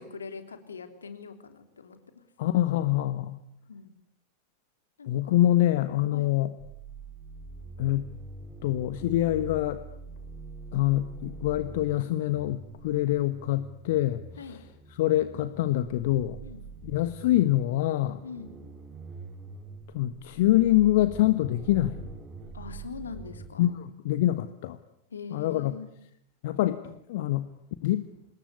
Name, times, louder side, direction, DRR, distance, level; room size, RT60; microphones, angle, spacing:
voice 1, 0.0-2.2 3.7-4.0 5.0-5.3 6.1-6.3 14.4-14.6 16.4-16.6 18.2-18.5 22.5-23.7 25.1-25.9, left 5 dB, 70° left, 8 dB, 3.3 m, -42 dB
voice 2, 2.4-3.4 5.1-6.5 7.8-8.1 8.6-9.8 10.7-14.6 14.9-16.4 16.8-18.2 19.9-22.0 23.6-24.8 25.3-25.7 26.4-27.5 27.8-28.1, left 14 dB, 50° left, 12 dB, 1.3 m, -25 dB
sound 1, 6.6-23.5, right 4 dB, 20° right, 4.0 m, -44 dB
26.5 x 21.0 x 9.9 m, 0.73 s
figure-of-eight pair, 90°, 0 cm